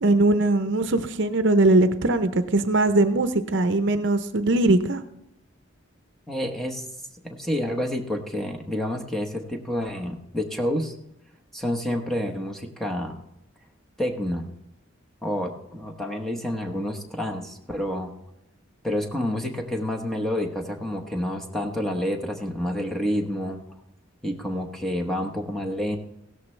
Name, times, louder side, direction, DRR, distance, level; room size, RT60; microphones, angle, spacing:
voice 1, 0.0-5.0, right 2 dB, 60° right, 9 dB, 0.7 m, -20 dB
voice 2, 6.3-6.8 7.2-10.9 11.5-13.1 14.0-14.5 15.2-18.1 18.8-23.6 24.2-26.0, left 1 dB, ahead, 2 dB, 1.1 m, -28 dB
16.5 x 13.5 x 3.3 m, 0.85 s
head